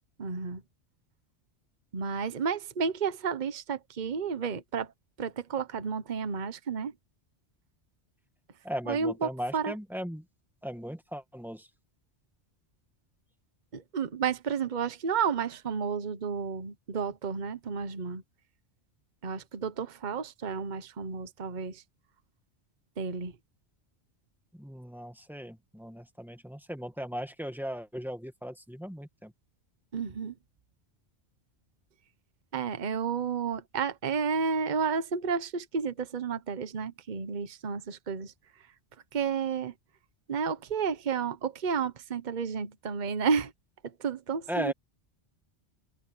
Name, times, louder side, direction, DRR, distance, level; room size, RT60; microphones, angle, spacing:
voice 1, 0.2-0.6 1.9-4.9 5.2-6.9 8.9-9.7 13.7-18.2 19.2-21.8 23.0-23.3 29.9-30.3 32.5-38.3 39.1-39.7 40.3-43.5 43.8-44.7, right 6 dB, 45° right, 1.1 m, -31 dB
voice 2, 8.6-10.2 10.6-11.7 24.5-29.3 44.5-44.7, equal, ahead, 2.0 m, -37 dB
omnidirectional pair, 1.1 m